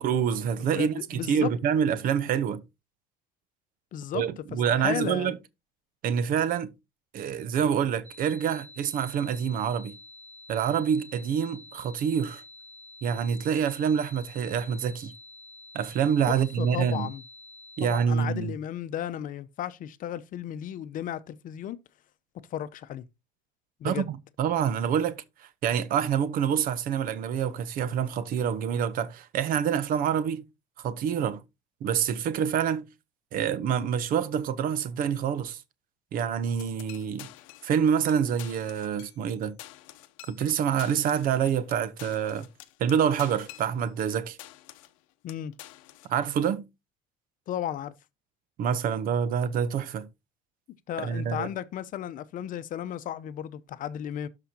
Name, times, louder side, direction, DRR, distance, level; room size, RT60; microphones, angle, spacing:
voice 1, 0.0-2.6 4.1-5.3 6.0-6.7 7.1-10.0 10.5-12.4 13.0-15.1 15.7-17.1 17.8-18.5 23.8-30.4 30.8-31.4 31.8-32.9 33.3-35.6 36.1-37.3 37.6-39.6 40.3-42.5 42.8-44.4 46.1-46.6 48.6-50.1 51.0-51.5, right 8 dB, 55° right, 0.9 m, -27 dB
voice 2, 0.6-1.5 3.9-4.2 4.7-5.3 16.6-17.2 17.8-21.8 22.5-23.0 23.8-24.1 45.2-45.5 47.5-47.9 50.9-54.3, left 11 dB, 55° left, 0.7 m, -34 dB
sound 1, 8.0-18.0, left 2 dB, 25° right, 4.6 m, -49 dB
sound 2, 36.6-37.8 38.1-38.2 38.4-39.3 39.6-44.1 44.4-45.0 45.3-46.1, left 16 dB, 90° left, 0.7 m, -47 dB
12.5 x 4.9 x 2.8 m
supercardioid pair, 90°, 17 cm